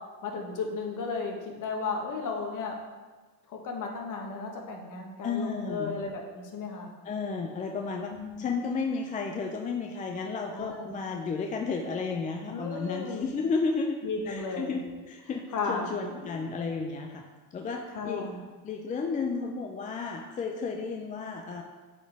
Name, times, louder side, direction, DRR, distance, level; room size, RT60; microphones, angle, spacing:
voice 1, 0.2-2.8 3.5-6.9 8.1-8.4 10.5-10.9 12.5-13.3 14.0-14.8 15.5-16.4 17.9-18.4, left 4 dB, 40° left, 1 dB, 1.4 m, -34 dB
voice 2, 5.2-5.9 7.0-8.1 8.4-14.0 14.3-17.2 17.5-18.3 18.6-21.6, left 4 dB, 20° left, 3 dB, 0.4 m, -32 dB
8.1 x 4.3 x 3.5 m, 1.3 s
hypercardioid pair, 90°, 47 cm